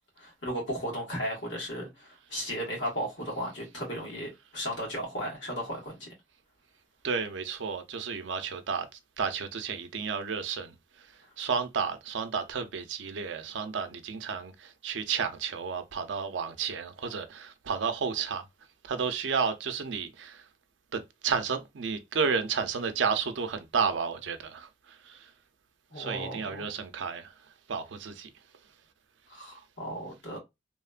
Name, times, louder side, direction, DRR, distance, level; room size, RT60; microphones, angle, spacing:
voice 1, 0.2-6.1 25.9-26.7 29.3-30.4, equal, 80° left, 1.4 m, -35 dB
voice 2, 7.0-8.9 9.2-10.7 11.4-18.4 18.8-20.4 20.9-24.7 25.1-25.2 26.0-27.3 27.7-28.3, right 6 dB, 80° right, 0.5 m, -32 dB
3.1 x 2.1 x 2.3 m
head